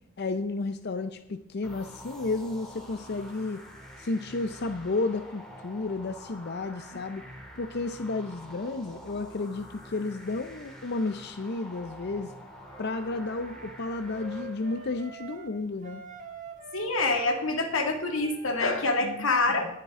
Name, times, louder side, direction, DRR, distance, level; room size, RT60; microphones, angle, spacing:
voice 1, 0.2-3.7 4.0-7.2 7.6-12.3 12.8-16.0 19.0-19.3, left 3 dB, 55° left, 9 dB, 0.6 m, -32 dB
sound 1, 1.6-15.1, equal, 5° left, 2.5 m, -47 dB
Wind instrument woodwind instrument, 12.6-15.5 15.8-19.0, right 3 dB, 40° right, 1.6 m, -45 dB
voice 2, 16.7-19.7, left 2 dB, 80° left, 3 dB, 2.1 m, -26 dB
19.0 x 7.6 x 3.7 m, 0.84 s
head